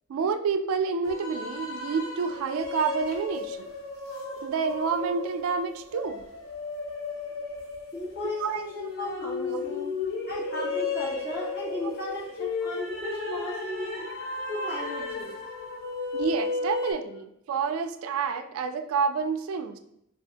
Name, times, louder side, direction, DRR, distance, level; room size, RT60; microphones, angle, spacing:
voice 1, 0.1-3.7 4.4-6.2 8.2-8.6 9.5-9.6 11.8-11.9 16.1-19.8, right 5 dB, 85° right, 9 dB, 0.3 m, -29 dB
sound 1, 1.0-16.9, left 3 dB, 80° left, 0.8 m, -34 dB
voice 2, 7.9-10.0 10.3-14.1 14.5-15.4, left 1 dB, 50° left, -6 dB, 1.2 m, -36 dB
3.3 x 2.3 x 2.8 m, 0.75 s
head